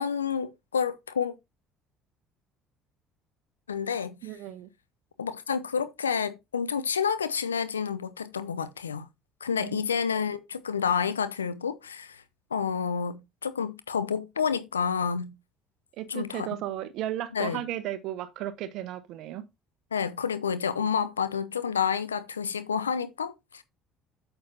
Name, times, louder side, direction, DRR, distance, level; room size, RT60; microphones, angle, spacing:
voice 1, 0.0-1.3 3.7-4.2 5.2-9.1 9.4-12.2 12.5-15.3 16.1-16.5 17.3-17.6 19.9-23.6, left 6 dB, 85° left, 0.6 m, -29 dB
voice 2, 4.2-4.7 9.6-9.8 16.0-19.4, right 12 dB, 60° right, 0.9 m, -35 dB
8.7 x 6.8 x 2.8 m
figure-of-eight pair, 60°, 0 cm